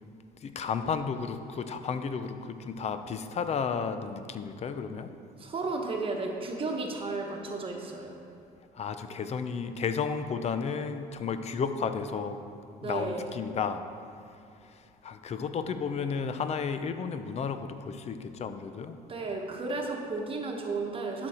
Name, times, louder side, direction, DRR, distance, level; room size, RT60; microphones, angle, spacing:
voice 1, 0.4-5.1 8.7-12.4 12.8-13.8 14.7-19.0, left 6 dB, 40° left, 9 dB, 0.6 m, -33 dB
voice 2, 5.4-8.2 12.8-13.3 19.1-21.3, right 3 dB, 30° right, 1 dB, 1.2 m, -33 dB
11.5 x 6.3 x 4.3 m, 2.6 s
cardioid pair, 110°, 17 cm